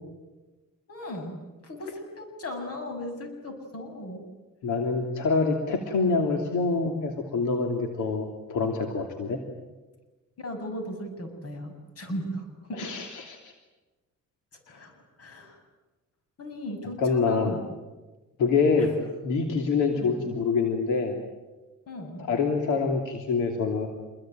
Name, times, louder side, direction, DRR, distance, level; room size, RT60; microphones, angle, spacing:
voice 1, 0.9-1.4 1.6-4.3 10.4-12.9 14.7-14.9 15.2-15.6 16.4-17.6 18.8-18.9 19.9-20.2 21.9-22.3, equal, 50° left, 6 dB, 7.2 m, -37 dB
voice 2, 4.6-9.4 12.8-13.5 14.7-14.8 17.0-17.6 18.4-18.9 19.2-21.2 22.3-23.9, left 4 dB, 85° left, 3 dB, 3.0 m, -26 dB
27.5 x 22.0 x 9.2 m, 1.2 s
cardioid pair, 90°, 30 cm